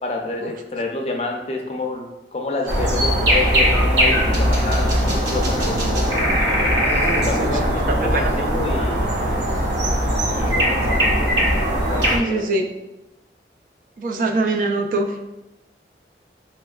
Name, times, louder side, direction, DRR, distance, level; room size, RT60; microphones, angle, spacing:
voice 1, 0.0-6.2 6.9-9.4 10.3-11.2 11.9-12.5, left 2 dB, 35° left, 2 dB, 0.4 m, -28 dB
sound 1, 2.7-12.2, equal, 85° right, 0.8 m, -20 dB
voice 2, 8.0-8.3 8.7-9.1 12.1-12.7 14.0-15.2, right 2 dB, 50° right, 4 dB, 0.3 m, -23 dB
4.3 x 3.0 x 2.3 m, 0.96 s
head